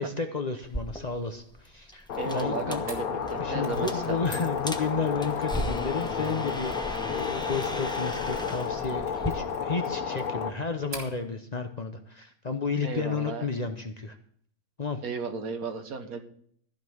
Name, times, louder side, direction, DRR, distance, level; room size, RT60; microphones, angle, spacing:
voice 1, 0.0-2.8 3.4-14.2 14.8-15.0, left 4 dB, 35° left, 6 dB, 0.8 m, -32 dB
sound 1, 0.6-9.3, equal, 5° left, 0.8 m, -38 dB
Cold Wind Loop, 2.1-10.5, left 6 dB, 85° left, 1.4 m, -32 dB
voice 2, 2.2-4.2 12.8-13.5 15.0-16.2, right 5 dB, 80° right, 6 dB, 1.8 m, -34 dB
Mechanisms, 2.9-11.2, right 2 dB, 55° right, 2.7 m, -50 dB
14.5 x 5.4 x 7.8 m, 0.63 s
omnidirectional pair, 1.5 m